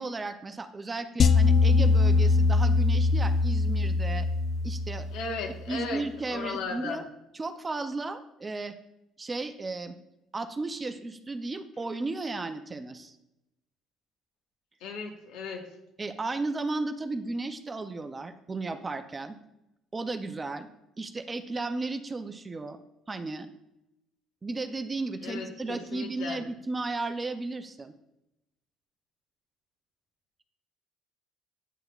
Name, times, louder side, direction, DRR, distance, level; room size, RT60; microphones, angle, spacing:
voice 1, 0.0-4.3 4.6-5.1 5.7-7.0 7.4-8.8 9.2-9.9 10.3-13.2 16.0-19.4 19.9-20.7 21.0-22.8 23.1-23.5 24.4-27.9, right 3 dB, 20° right, 9 dB, 0.5 m, -34 dB
sound 1, 1.2-5.5, left 3 dB, 40° left, 0.4 m, -22 dB
voice 2, 5.1-7.0 14.8-15.7 25.2-26.4, left 4 dB, 85° left, 2 dB, 1.2 m, -36 dB
9.1 x 5.7 x 2.4 m, 0.89 s
cardioid pair, 120°, 0 cm